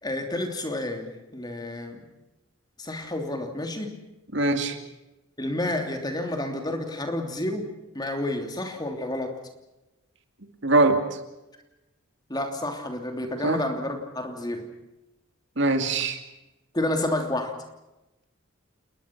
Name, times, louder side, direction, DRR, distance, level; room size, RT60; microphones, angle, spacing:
voice 1, 0.0-2.0 2.8-4.0 5.4-7.7 7.9-9.3 12.3-14.7 16.7-17.6, left 1 dB, 20° left, 4 dB, 3.0 m, -30 dB
voice 2, 4.3-4.8 10.6-11.2 13.4-13.6 15.6-16.2, right 2 dB, 60° right, 6 dB, 2.5 m, -22 dB
29.0 x 20.5 x 6.0 m, 0.97 s
head